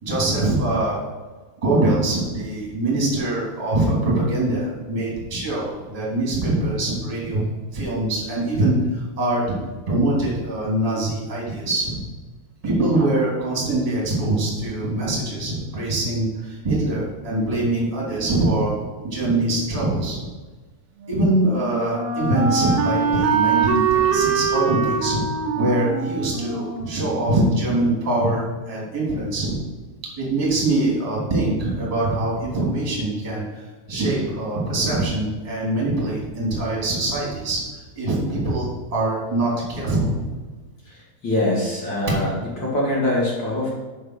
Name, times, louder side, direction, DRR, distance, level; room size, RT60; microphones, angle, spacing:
voice 1, 0.0-1.0 1.6-7.4 7.7-9.4 9.9-12.0 12.6-18.8 19.0-20.2 21.1-25.2 25.5-29.6 30.2-33.6 33.9-37.6 37.9-40.2, right 2 dB, 10° right, -5 dB, 2.4 m, -23 dB
Wind instrument woodwind instrument, 21.0-27.8, right 6 dB, 80° right, 2.9 m, -23 dB
voice 2, 40.9-42.3 42.6-43.7, left 1 dB, 35° left, -5 dB, 2.1 m, -23 dB
7.6 x 5.9 x 6.4 m, 1.3 s
omnidirectional pair, 4.6 m